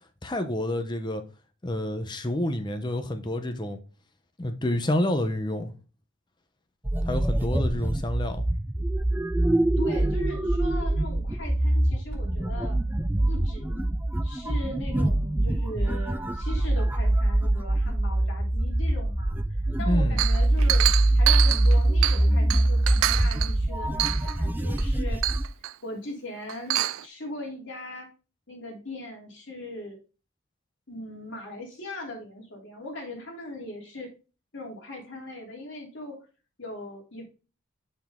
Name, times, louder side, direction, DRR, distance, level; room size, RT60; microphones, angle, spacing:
voice 1, 0.2-1.2 1.6-3.8 4.4-5.7 7.0-8.4 19.9-20.2, left 1 dB, 20° left, 0.7 m, -28 dB
sound 1, 6.8-25.5, right 1 dB, 10° right, 0.3 m, -24 dB
voice 2, 9.8-12.8 13.3-13.8 14.2-19.3 19.8-25.2 25.8-28.1 28.5-30.0 30.9-34.1 34.5-36.2 36.6-37.2, left 1 dB, 60° left, 2.9 m, -39 dB
Chink clink, 20.2-22.3 22.5-23.5 24.0-24.4 24.8-24.9 25.2-25.7 26.5-27.0, right 15 dB, 85° right, 0.4 m, -26 dB
6.8 x 5.9 x 3.6 m
head